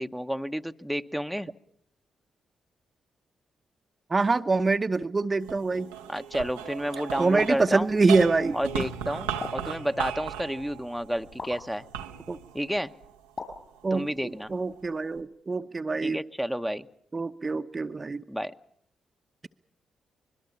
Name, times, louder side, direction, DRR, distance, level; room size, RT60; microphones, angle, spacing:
voice 1, 0.0-1.5 6.1-7.9 8.5-11.9 12.5-12.9 13.9-14.5 16.0-16.9 18.3-18.5, equal, ahead, 8 dB, 1.0 m, -31 dB
voice 2, 4.1-5.9 7.2-8.6 12.3-12.4 13.8-14.1 14.5-16.2 17.1-18.2, right 3 dB, 35° right, 8 dB, 0.9 m, -25 dB
sound 1, 5.4-13.9 14.5-15.2, right 9 dB, 90° right, 0.9 m, -37 dB
sound 2, 7.4-7.7 9.4-9.7 11.4-11.6 13.4-13.7, left 3 dB, 45° left, 6.2 m, -37 dB
24.5 x 21.5 x 7.1 m, 0.70 s
hypercardioid pair, 40°, 0 cm